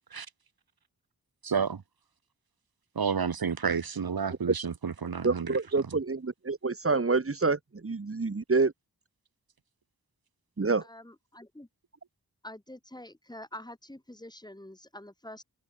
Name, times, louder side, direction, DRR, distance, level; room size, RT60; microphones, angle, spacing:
voice 1, 1.4-1.8 3.0-5.5, right 6 dB, 85° right, 2.3 m, -30 dB
voice 2, 5.2-8.7 10.6-10.8, right 4 dB, 40° right, 1.9 m, -27 dB
voice 3, 10.8-11.7 12.4-15.4, left 1 dB, 10° left, 4.4 m, -46 dB
wide cardioid pair, 95°, 36 cm